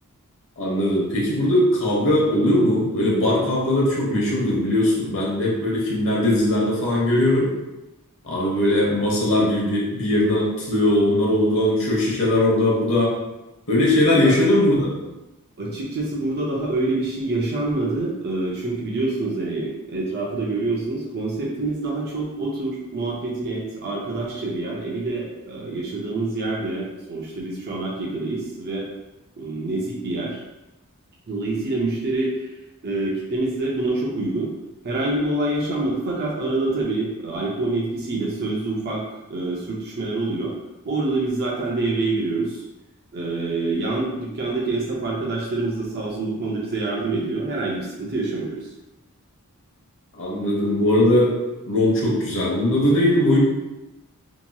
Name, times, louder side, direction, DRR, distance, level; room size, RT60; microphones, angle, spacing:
voice 1, 0.6-7.5 8.2-13.1 13.7-14.9 50.2-51.3 51.7-53.4, left 1 dB, 60° left, -4 dB, 0.9 m, -20 dB
voice 2, 15.6-28.9 29.4-30.4 31.3-32.5 32.8-34.5 34.8-39.0 39.3-40.5 40.8-42.6 43.1-48.6, right 2 dB, 45° right, -4 dB, 0.5 m, -26 dB
2.9 x 2.7 x 2.2 m, 0.97 s
head